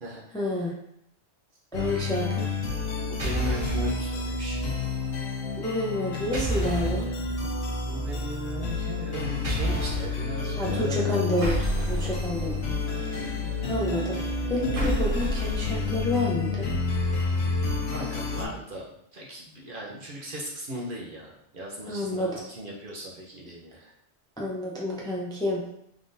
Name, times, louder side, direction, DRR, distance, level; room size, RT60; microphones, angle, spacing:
voice 1, 0.3-0.7 1.7-2.5 5.6-7.1 10.6-12.6 13.0-13.3 13.7-14.2 14.5-16.7 21.9-22.4 24.4-25.6, left 1 dB, 5° left, -3 dB, 0.5 m, -29 dB
sound 1, 1.7-18.5, left 4 dB, 65° left, 1.0 m, -30 dB
voice 2, 3.1-4.6 7.9-11.5 11.9-12.6 17.9-18.8 19.1-22.3 22.6-23.9, equal, 50° right, -3 dB, 0.8 m, -37 dB
sound 2, 3.2-3.9 6.3-7.0 9.4-10.2 11.4-12.8 14.8-16.2, right 2 dB, 30° right, 1.0 m, -30 dB
3.7 x 3.5 x 2.6 m, 0.77 s
omnidirectional pair, 1.2 m